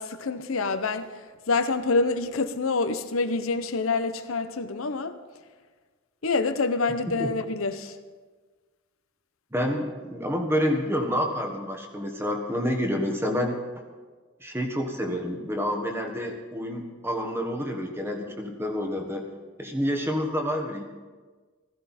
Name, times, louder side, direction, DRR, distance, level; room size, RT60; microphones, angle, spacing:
voice 1, 0.0-5.1 6.2-8.0, left 3 dB, 75° left, 0.8 m, -27 dB
voice 2, 9.5-13.6 14.4-19.2 19.6-20.8, equal, 10° right, 1.4 m, -28 dB
15.5 x 15.0 x 4.3 m
head